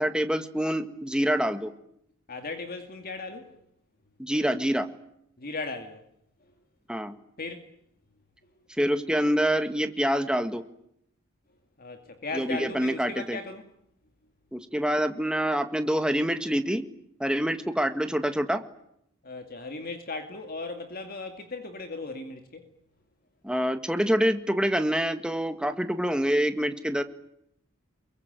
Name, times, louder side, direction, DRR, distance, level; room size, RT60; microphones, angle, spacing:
voice 1, 0.0-1.7 4.2-4.9 6.9-7.1 8.8-10.6 12.3-13.4 14.5-16.9 17.2-18.6 23.4-27.0, equal, 5° right, 1.8 m, -26 dB
voice 2, 2.3-3.6 5.4-6.0 7.4-7.7 11.8-13.7 19.2-22.7, left 3 dB, 45° left, 2.3 m, -37 dB
27.5 x 23.0 x 9.3 m
head